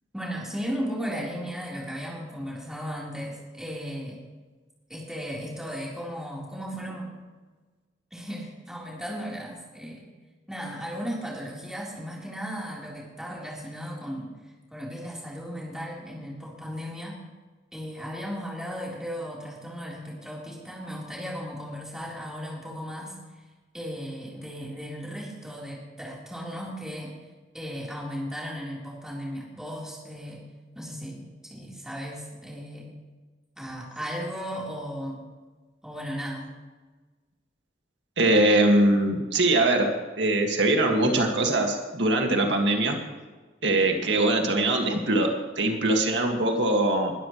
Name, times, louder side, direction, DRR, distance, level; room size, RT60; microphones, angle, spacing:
voice 1, 0.1-4.2 4.9-7.1 8.1-10.1 10.5-14.3 14.7-17.2 17.7-23.2 23.7-27.1 27.5-30.5 30.7-32.9 33.6-35.2 35.8-36.5, equal, 5° right, -5 dB, 3.8 m, -36 dB
voice 2, 38.2-43.0 43.6-45.3 45.6-47.1, right 2 dB, 85° right, 2 dB, 2.0 m, -22 dB
21.0 x 13.0 x 3.2 m, 1.3 s
head